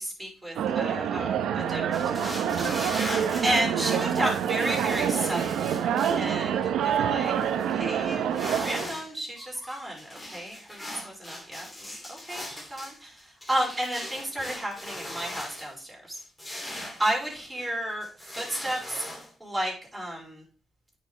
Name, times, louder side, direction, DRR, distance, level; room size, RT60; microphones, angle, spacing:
voice 1, 0.0-2.2 2.8-3.1 3.4-5.6 6.2-8.3 8.6-13.2 13.5-16.2 16.5-18.0 18.3-19.0 19.4-20.4, right 1 dB, 10° right, -4 dB, 4.6 m, -32 dB
sound 1, 0.6-8.9, right 8 dB, 80° right, 0.8 m, -27 dB
sound 2, 1.9-6.2 6.8-6.9 7.2-7.7 8.2-9.1 9.4-15.7 16.1-17.7 18.0-19.3, left 1 dB, 20° left, 2.7 m, -39 dB
9.2 x 5.7 x 3.3 m, 0.39 s
cardioid pair, 90°, 0 cm